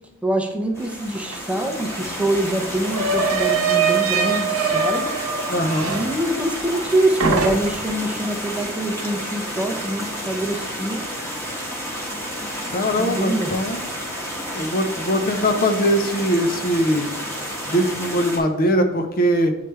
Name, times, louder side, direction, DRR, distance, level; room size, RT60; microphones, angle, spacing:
voice 1, 0.2-5.0 5.9-11.0 13.0-13.7, right 1 dB, 5° right, 3 dB, 0.5 m, -24 dB
sound 1, 0.7-18.4, equal, 10° left, 1.2 m, -31 dB
sound 2, 1.3-1.4 1.7-6.9 7.2-7.9, right 5 dB, 80° right, 0.9 m, -23 dB
voice 2, 5.5-5.9 12.7-13.8 14.5-17.1 17.7-19.6, equal, 45° left, 6 dB, 0.6 m, -21 dB
9.2 x 3.2 x 3.3 m, 1.0 s
head